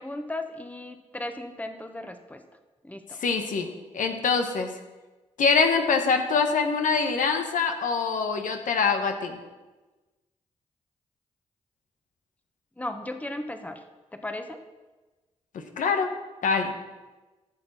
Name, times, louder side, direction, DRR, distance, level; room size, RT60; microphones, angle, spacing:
voice 1, 0.0-2.4 2.8-3.2 12.8-13.8 14.1-14.6, left 1 dB, 10° left, 7 dB, 1.2 m, -36 dB
voice 2, 3.2-4.7 5.4-9.4 15.5-16.1 16.4-16.7, left 5 dB, 70° left, 5 dB, 1.1 m, -24 dB
14.0 x 6.6 x 4.2 m, 1.2 s
supercardioid pair, 45°, 14 cm